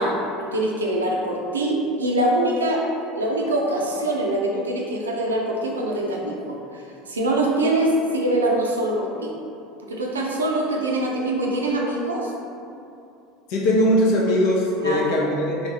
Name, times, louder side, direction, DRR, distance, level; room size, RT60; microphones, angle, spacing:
voice 1, 0.0-2.9 3.1-9.3 9.8-12.3 14.8-15.3, right 1 dB, 85° right, -1 dB, 0.4 m, -24 dB
voice 2, 13.5-15.7, equal, 65° left, -3 dB, 0.7 m, -20 dB
3.3 x 3.1 x 2.7 m, 2.6 s
hypercardioid pair, 75°, 0 cm